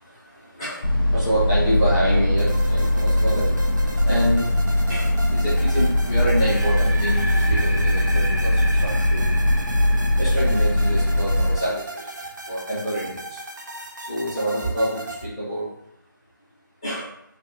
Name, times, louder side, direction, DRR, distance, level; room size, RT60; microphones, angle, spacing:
voice 1, 0.0-3.7 4.0-4.4 4.9-9.4 10.1-12.1 12.4-13.4 14.1-15.7 16.8-17.1, equal, 15° left, -11 dB, 0.7 m, -27 dB
sound 1, 0.8-11.6, left 1 dB, 75° left, 0.5 m, -20 dB
sound 2, 2.4-15.3, right 2 dB, 65° right, 0.5 m, -37 dB
sound 3, 6.3-12.3, right 2 dB, 85° right, 0.9 m, -35 dB
2.8 x 2.5 x 2.5 m, 0.76 s
figure-of-eight pair, 170°, 11 cm